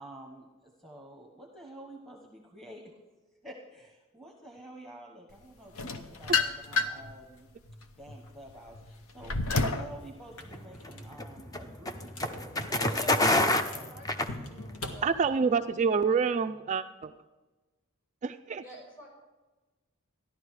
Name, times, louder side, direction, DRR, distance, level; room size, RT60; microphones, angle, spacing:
voice 1, 0.0-2.8 3.4-7.5 8.0-13.9 14.2-14.4, right 1 dB, ahead, 0 dB, 1.2 m, -49 dB
sound 1, 5.8-7.1 7.6-9.9, left 4 dB, 70° left, 0.9 m, -29 dB
sound 2, 10.2-15.7, left 2 dB, 85° left, 1.6 m, -47 dB
sound 3, 10.5-14.9, left 1 dB, 15° left, 0.6 m, -28 dB
voice 2, 12.8-13.2 13.5-15.3 18.6-19.1, equal, 40° left, -2 dB, 5.8 m, -47 dB
voice 3, 15.0-17.1 18.2-18.6, right 5 dB, 35° right, 8 dB, 0.3 m, -27 dB
14.5 x 11.5 x 4.8 m, 1.2 s
head